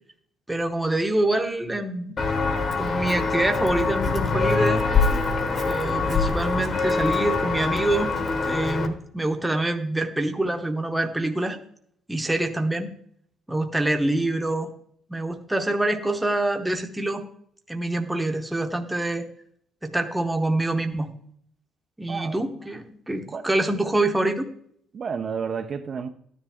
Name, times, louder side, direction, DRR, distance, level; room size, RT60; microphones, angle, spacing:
voice 1, 0.5-2.1 2.8-4.8 5.7-8.1 8.4-11.6 12.1-12.9 13.5-14.7 15.1-17.2 17.7-19.3 19.8-21.1 22.0-24.5, right 2 dB, 5° right, 6 dB, 0.9 m, -25 dB
Walk footsteps, 2.2-8.9, left 4 dB, 35° left, 1.4 m, -24 dB
voice 2, 22.1-22.4 23.3-23.5 24.9-26.1, right 6 dB, 35° right, 5 dB, 0.6 m, -31 dB
13.5 x 10.0 x 3.6 m, 0.65 s
cardioid pair, 150°, 0 cm